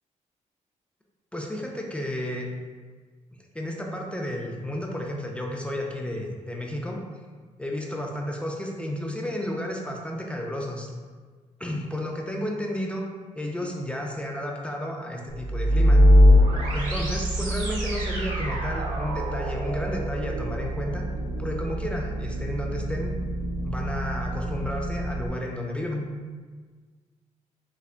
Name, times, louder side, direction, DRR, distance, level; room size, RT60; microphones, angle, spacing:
voice 1, 1.3-2.5 3.5-7.0 7.6-10.9 11.6-13.0 13.4-16.0 16.7-21.0 21.4-23.1 23.6-26.1, left 1 dB, 10° left, -1 dB, 0.3 m, -32 dB
sound 1, 15.3-25.3, equal, 90° right, 0.7 m, -23 dB
3.7 x 3.2 x 2.4 m, 1.5 s
cardioid pair, 110°, 13 cm